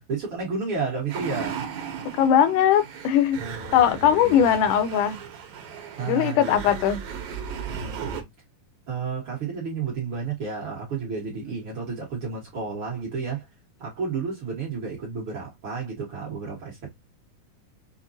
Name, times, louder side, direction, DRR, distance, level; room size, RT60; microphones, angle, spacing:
voice 1, 0.0-1.6 3.4-4.7 6.0-6.7 7.7-8.3 8.9-13.5 13.8-16.9, right 5 dB, 55° right, 1.7 m, -32 dB
sound 1, 1.1-8.2, right 7 dB, 70° right, 2.0 m, -36 dB
voice 2, 2.1-3.4 3.7-5.2 6.0-7.0, left 9 dB, 80° left, 2.1 m, -20 dB
6.2 x 2.2 x 2.6 m
omnidirectional pair, 3.7 m